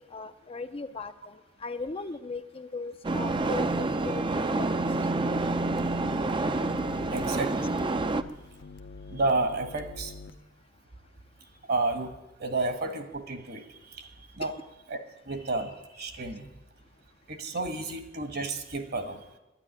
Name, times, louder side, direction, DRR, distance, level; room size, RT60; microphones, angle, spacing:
voice 1, 0.0-1.4 1.6-4.8 14.4-14.5, left 3 dB, 30° left, 0.5 m, -38 dB
sound 1, 3.0-8.2, right 2 dB, 25° right, 0.5 m, -28 dB
sound 2, 5.4-10.4, left 4 dB, 65° left, 0.7 m, -45 dB
voice 2, 7.1-7.7 9.1-10.1 11.7-12.1 12.4-13.6 14.4-14.5 14.9-15.0 15.3-16.5 17.3-19.2, right 2 dB, 55° right, 1.5 m, -31 dB
11.0 x 9.7 x 9.8 m
head